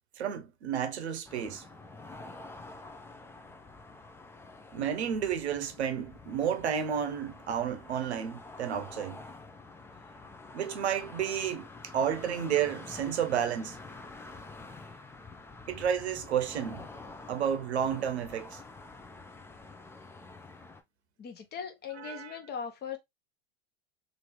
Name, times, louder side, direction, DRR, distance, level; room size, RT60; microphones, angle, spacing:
voice 1, 0.2-1.9 4.7-9.2 10.5-13.8 14.2-14.3 15.7-16.9 17.3-18.6 21.9-22.4, right 8 dB, 85° right, 0.7 m, -31 dB
sound 1, 1.2-20.8, left 3 dB, 10° left, 0.4 m, -48 dB
voice 2, 21.2-23.0, left 6 dB, 30° left, 1.0 m, -39 dB
2.9 x 2.7 x 3.0 m
hypercardioid pair, 100°, 32 cm